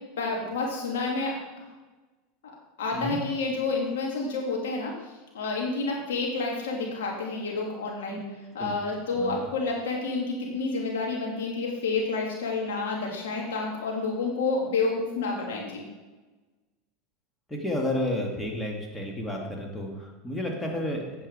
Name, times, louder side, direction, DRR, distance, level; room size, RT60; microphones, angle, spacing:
voice 1, 0.2-1.7 2.8-4.9 5.3-8.2 8.5-15.9, left 3 dB, 80° left, -1 dB, 2.9 m, -29 dB
voice 2, 17.5-21.3, left 1 dB, 10° left, 1 dB, 2.3 m, -31 dB
8.8 x 7.4 x 4.9 m, 1.2 s
hypercardioid pair, 95°, 0 cm